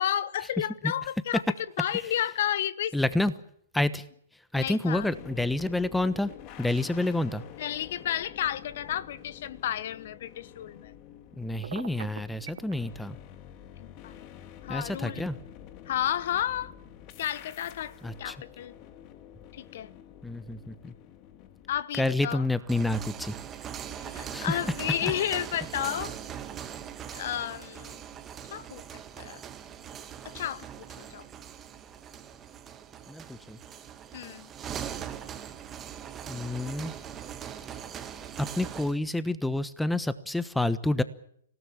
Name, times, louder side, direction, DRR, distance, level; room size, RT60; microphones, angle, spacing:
voice 1, 0.0-1.4 1.8-2.9 4.5-5.1 7.6-10.9 13.8-14.3 14.6-15.3 15.9-16.7 17.2-17.9 18.2-18.8 19.5-19.9 21.7-22.4 23.9-26.1 27.1-28.0 28.5-28.8 29.2-29.4 30.2-30.7 31.0-31.2 34.1-34.5, left 11 dB, 55° left, 1.1 m, -32 dB
voice 2, 2.9-3.3 3.7-4.0 4.5-6.3 6.6-7.4 11.4-13.2 14.7-15.4 18.0-18.3 20.2-20.9 22.0-23.3 24.3-24.6 25.0-25.1 33.1-33.6 36.3-36.9 38.4-41.0, left 2 dB, 5° left, 1.2 m, -28 dB
sound 1, 4.9-21.8, left 10 dB, 35° left, 2.0 m, -48 dB
Telephone, 11.6-12.7, right 10 dB, 60° right, 1.3 m, -40 dB
sound 2, 22.6-39.0, right 9 dB, 20° right, 1.9 m, -41 dB
27.0 x 17.5 x 7.4 m
hypercardioid pair, 120°, 0 cm